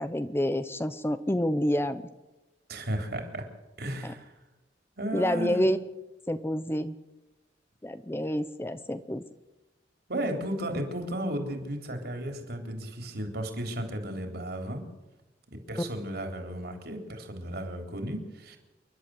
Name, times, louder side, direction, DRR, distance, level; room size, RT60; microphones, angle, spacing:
voice 1, 0.0-2.0 4.0-4.1 5.1-5.8 6.3-6.9 7.8-9.2, left 1 dB, 15° left, 12 dB, 0.7 m, -28 dB
voice 2, 2.7-3.5 3.8-4.3 5.0-5.6 10.1-14.9 15.5-18.6, right 1 dB, 60° right, 5 dB, 3.7 m, -34 dB
29.0 x 11.5 x 7.8 m, 1.1 s
head